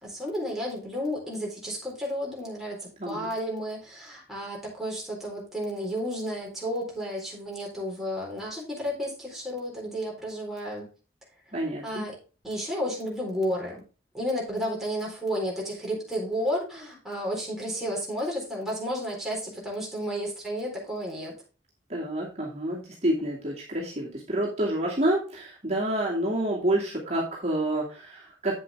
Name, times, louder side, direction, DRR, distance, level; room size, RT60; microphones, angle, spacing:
voice 1, 0.0-10.9 11.8-12.2 12.4-13.8 14.1-21.3, equal, ahead, -4 dB, 4.1 m, -32 dB
voice 2, 11.5-12.1 21.9-28.6, right 1 dB, 35° right, -4 dB, 2.4 m, -28 dB
8.9 x 7.6 x 3.6 m, 0.34 s
head